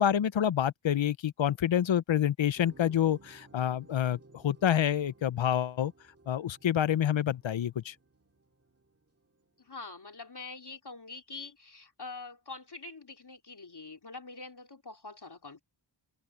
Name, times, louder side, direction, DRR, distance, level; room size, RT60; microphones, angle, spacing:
voice 1, 0.0-5.9 6.3-7.9, left 10 dB, 85° left, 0.7 m, -27 dB
sound 1, 2.5-9.6, right 3 dB, 30° right, 2.0 m, -58 dB
voice 2, 9.6-15.6, left 3 dB, 60° left, 3.4 m, -45 dB
wide cardioid pair, 70°, 45 cm